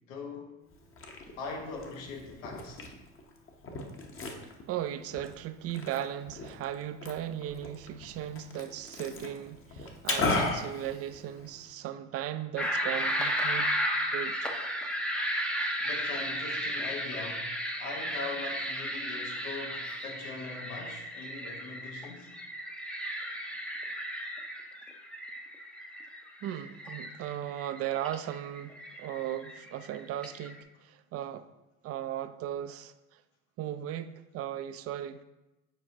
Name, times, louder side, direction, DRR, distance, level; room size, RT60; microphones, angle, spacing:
voice 1, 0.1-0.5 1.4-2.8 15.8-22.3, left 3 dB, 80° left, 1.3 m, -41 dB
Liquid, 0.7-11.7, left 3 dB, 35° left, 1.0 m, -37 dB
voice 2, 4.4-13.7 14.1-14.5 26.4-28.7 29.0-31.5 31.8-33.2 33.6-35.2, right 11 dB, 40° right, 0.4 m, -37 dB
sound 1, 12.6-30.6, equal, 5° left, 0.6 m, -34 dB
7.3 x 4.7 x 2.8 m
hypercardioid pair, 80°, 38 cm